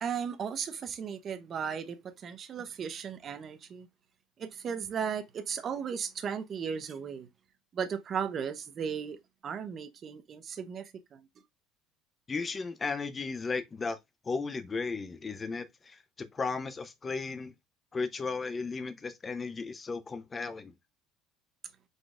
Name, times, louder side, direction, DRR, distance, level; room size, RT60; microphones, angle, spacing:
voice 1, 0.0-3.9 4.4-7.3 7.7-9.2 9.4-11.3, right 7 dB, 35° right, 0.8 m, -36 dB
voice 2, 12.3-14.0 14.3-16.0 16.3-17.5 17.9-20.7, left 4 dB, 20° left, 0.6 m, -35 dB
5.3 x 3.9 x 2.4 m
cardioid pair, 130°, 0 cm